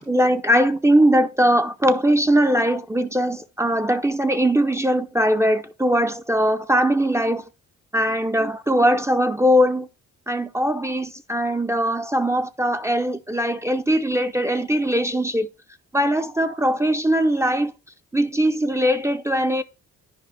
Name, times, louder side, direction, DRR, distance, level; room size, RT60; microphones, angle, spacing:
voice 1, 0.1-7.4 7.9-9.9 10.3-15.5 15.9-17.7 18.1-19.6, equal, 10° right, 0.5 m, -20 dB
10.0 x 4.9 x 3.3 m
cardioid pair, 90°, 30 cm